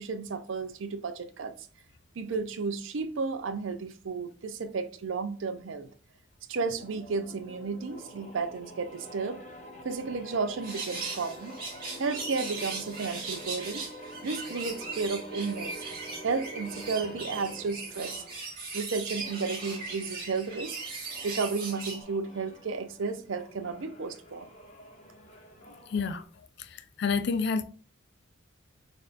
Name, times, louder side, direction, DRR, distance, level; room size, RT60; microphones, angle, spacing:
voice 1, 0.0-1.5 2.2-5.9 6.5-9.4 9.8-11.6 12.0-13.9 14.2-15.7 16.2-18.2 18.7-20.8 21.2-24.5, right 4 dB, 70° right, 0.5 m, -33 dB
sound 1, 6.8-18.4 19.1-26.2, equal, 35° left, 0.8 m, -47 dB
sound 2, 10.6-22.0, right 4 dB, 45° right, 1.5 m, -39 dB
voice 2, 25.9-26.2 27.0-27.6, left 5 dB, 55° left, 0.4 m, -27 dB
6.3 x 2.6 x 2.5 m
head